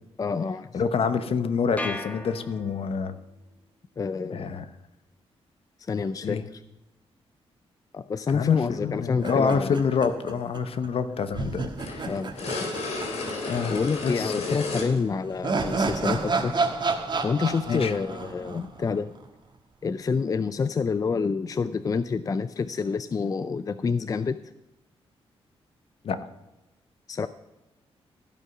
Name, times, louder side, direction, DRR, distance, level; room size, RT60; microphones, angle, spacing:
voice 1, 0.2-0.8 4.0-4.5 5.9-6.6 7.9-9.8 12.0-12.8 13.7-16.6 17.2-19.1 19.8-24.4 27.1-27.3, left 5 dB, 35° left, 13 dB, 0.4 m, -28 dB
voice 2, 0.7-3.2 4.3-4.6 6.2-6.4 8.3-12.1 13.5-14.6 17.7-17.9 26.0-26.2, left 6 dB, 60° left, 11 dB, 0.9 m, -27 dB
sound 1, 1.8-3.1, left 1 dB, 15° left, 1.4 m, -36 dB
sound 2, 9.2-10.6 10.8-10.9 11.3-13.6 13.8-13.9 14.9-19.3, right 4 dB, 45° right, 1.5 m, -30 dB
sound 3, 11.8-15.0 16.0-16.1 17.7-17.9, left 3 dB, 85° left, 3.3 m, -33 dB
15.5 x 5.5 x 6.0 m, 1.0 s
cardioid pair, 105°, 11 cm